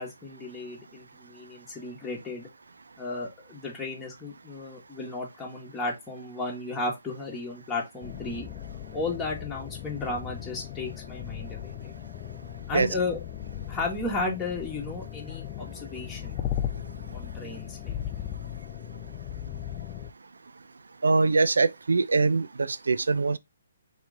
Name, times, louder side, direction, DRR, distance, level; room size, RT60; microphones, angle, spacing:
voice 1, 0.0-2.5 3.0-8.4 8.9-11.9 12.7-13.2 13.7-16.4 17.1-18.0, left 3 dB, 10° left, 1.2 m, -34 dB
sound 1, 8.0-20.1, left 11 dB, 30° left, 0.4 m, -37 dB
voice 2, 21.0-23.4, right 3 dB, 80° right, 0.3 m, -23 dB
3.0 x 2.9 x 3.7 m
figure-of-eight pair, 140°, 0 cm